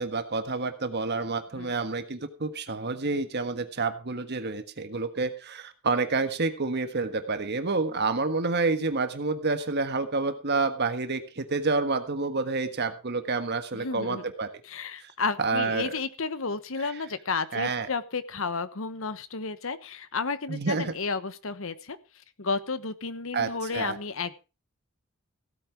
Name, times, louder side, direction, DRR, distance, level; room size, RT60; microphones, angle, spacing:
voice 1, 0.0-14.5 15.0-15.1 15.4-16.0 17.5-17.9 20.5-20.9 23.3-24.0, right 3 dB, 50° right, 8 dB, 1.4 m, -28 dB
voice 2, 13.7-14.2 14.6-22.0 22.4-24.3, left 4 dB, 65° left, 13 dB, 1.1 m, -32 dB
16.0 x 8.8 x 4.6 m, 0.32 s
head